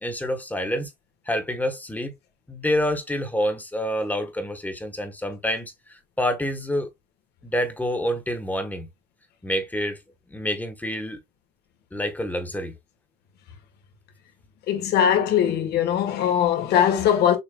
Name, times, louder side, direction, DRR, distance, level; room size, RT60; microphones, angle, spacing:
voice 1, 0.0-0.9 1.2-2.1 2.5-6.9 7.4-8.9 9.4-10.0 10.3-11.2 11.9-12.7, equal, 10° left, 1.4 m, -27 dB
voice 2, 14.7-17.4, left 9 dB, 75° left, 1.6 m, -20 dB
6.8 x 2.9 x 2.3 m
cardioid pair, 110°, 17 cm